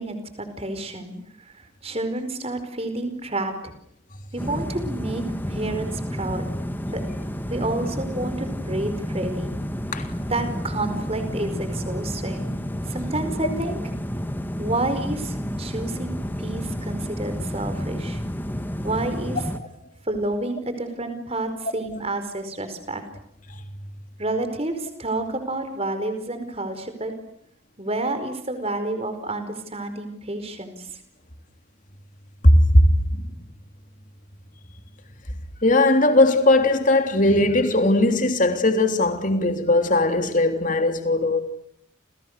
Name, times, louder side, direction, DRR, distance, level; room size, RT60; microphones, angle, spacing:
voice 1, 0.0-3.7 4.3-6.5 6.9-7.0 7.5-9.5 10.3-12.5 12.9-13.8 14.6-18.2 18.8-19.4 20.0-23.0 24.2-27.1 27.8-30.9, right 2 dB, 30° right, 4.8 m, -29 dB
sound 1, 4.4-19.6, equal, 10° left, 2.1 m, -30 dB
voice 2, 32.4-33.3 35.6-41.4, left 1 dB, 40° left, 3.3 m, -18 dB
30.0 x 29.5 x 6.8 m
head